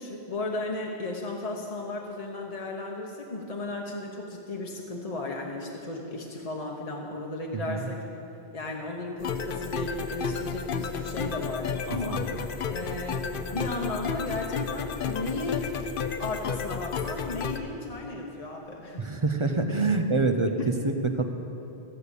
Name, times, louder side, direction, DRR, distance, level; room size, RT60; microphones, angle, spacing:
voice 1, 0.0-8.0 8.5-12.3 12.7-15.7 16.2-19.1 20.4-20.7, left 2 dB, 35° left, -1 dB, 1.0 m, -34 dB
sound 1, 9.2-17.6, left 6 dB, 60° left, 0.8 m, -32 dB
voice 2, 19.0-20.5 20.8-21.3, right 3 dB, 35° right, 6 dB, 0.6 m, -25 dB
15.0 x 6.7 x 8.2 m, 2.9 s
omnidirectional pair, 1.1 m